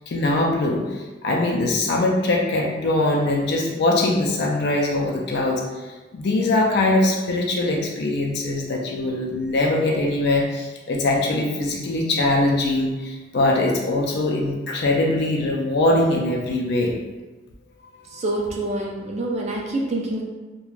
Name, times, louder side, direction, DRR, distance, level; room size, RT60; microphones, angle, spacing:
voice 1, 0.0-16.9, left 2 dB, 60° left, -1 dB, 0.4 m, -22 dB
voice 2, 18.1-20.2, right 2 dB, 35° right, -1 dB, 0.4 m, -26 dB
2.4 x 2.2 x 3.1 m, 1.2 s
head